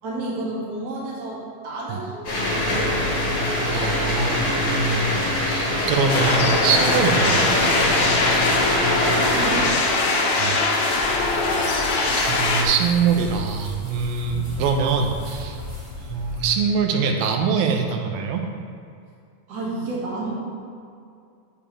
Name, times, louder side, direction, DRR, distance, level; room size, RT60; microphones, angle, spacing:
voice 1, 0.0-3.3 8.9-9.8 14.3-14.5 19.5-20.3, right 2 dB, 50° right, -5 dB, 1.1 m, -31 dB
sound 1, 2.2-9.7, left 1 dB, 45° left, 2.2 m, -23 dB
voice 2, 3.7-7.5 10.3-10.6 11.4-11.5 12.2-15.6 16.1-18.4, right 6 dB, 80° right, 3 dB, 2.5 m, -23 dB
sound 2, 6.1-12.6, left 3 dB, 75° left, 1.7 m, -22 dB
sound 3, 10.9-16.6, left 2 dB, 30° right, 1.2 m, -36 dB
7.1 x 6.9 x 4.5 m, 2.4 s
omnidirectional pair, 4.3 m